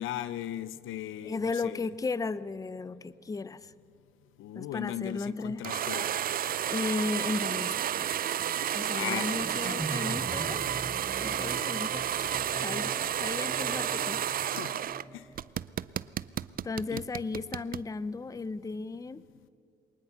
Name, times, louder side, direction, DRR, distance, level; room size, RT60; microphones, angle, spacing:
voice 1, 0.0-1.9 4.4-6.1 8.9-9.8 14.4-14.8 15.1-15.3 16.9-17.0, left 12 dB, 85° left, 16 dB, 0.7 m, -38 dB
voice 2, 1.2-3.7 4.5-5.6 6.7-8.1 8.7-10.7 11.2-12.0 12.6-14.5 16.6-19.2, left 4 dB, 15° left, 17 dB, 0.5 m, -35 dB
sound 1, 5.6-15.0 15.4-17.9, right 10 dB, 45° right, 0.4 m, -31 dB
sound 2, 9.1-15.4, right 1 dB, 10° right, 1.2 m, -42 dB
22.5 x 19.5 x 5.8 m, 2.5 s
cardioid pair, 90°, 20 cm